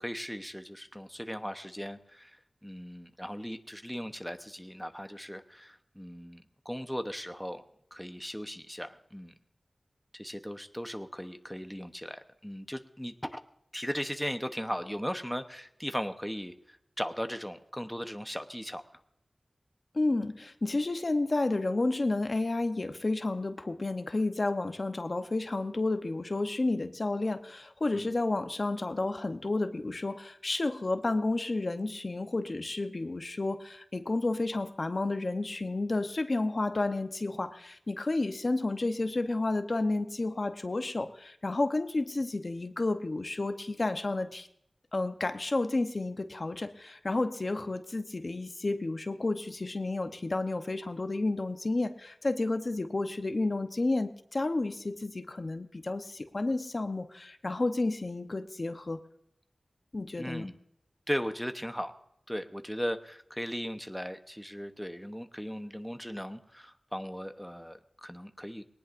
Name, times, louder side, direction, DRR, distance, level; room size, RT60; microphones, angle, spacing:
voice 1, 0.0-7.6 7.9-9.3 10.1-13.4 13.7-18.8 27.9-28.1 60.2-60.5 61.1-61.9 62.3-68.6, equal, ahead, 7 dB, 0.8 m, -37 dB
voice 2, 19.9-44.5 44.9-59.0 59.9-60.5, left 2 dB, 50° left, 8 dB, 0.8 m, -31 dB
20.0 x 18.5 x 2.6 m, 0.77 s
wide cardioid pair, 70°, 0 cm